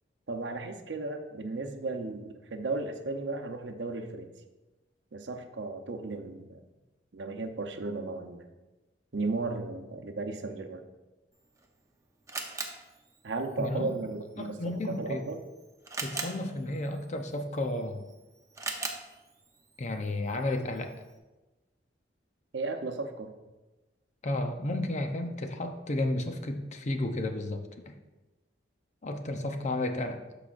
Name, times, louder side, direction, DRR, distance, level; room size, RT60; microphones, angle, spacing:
voice 1, 0.3-4.3 5.1-6.6 7.1-8.5 9.1-10.8 13.2-15.4 22.5-23.4, right 3 dB, 75° right, 5 dB, 0.7 m, -35 dB
Camera, 11.3-21.2, right 3 dB, 15° right, 0.7 m, -43 dB
voice 2, 13.6-13.9 14.4-15.2 16.0-18.0 19.8-20.9 24.2-27.9 29.0-30.2, left 1 dB, 40° left, 6 dB, 0.7 m, -32 dB
13.0 x 4.9 x 2.5 m, 1.1 s
head